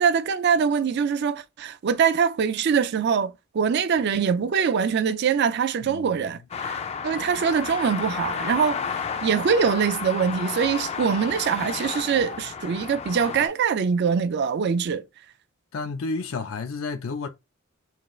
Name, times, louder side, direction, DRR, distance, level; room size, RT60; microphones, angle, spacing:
voice 1, 0.0-6.8 7.0-15.0, right 6 dB, 55° right, 0.4 m, -23 dB
voice 2, 5.8-6.3 15.7-17.3, left 4 dB, 90° left, 0.5 m, -31 dB
sound 1, 6.5-13.5, left 6 dB, 30° left, 0.4 m, -32 dB
4.5 x 2.4 x 3.1 m
head